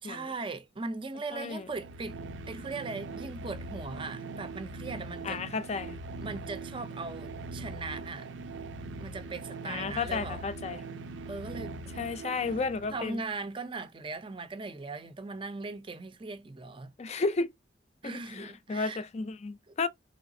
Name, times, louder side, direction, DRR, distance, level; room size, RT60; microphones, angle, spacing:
voice 1, 0.0-2.2 2.5-5.4 6.2-8.3 9.0-10.4 11.3-12.0 12.9-16.9 18.0-19.0 19.7-19.9, right 3 dB, 25° right, 0.5 m, -39 dB
voice 2, 1.3-1.7 5.2-6.0 9.6-10.8 12.0-13.2 17.0-17.5 18.0-19.9, left 4 dB, 35° left, 0.4 m, -33 dB
sound 1, 1.6-13.2, right 2 dB, 80° right, 0.5 m, -41 dB
3.8 x 3.2 x 2.6 m
head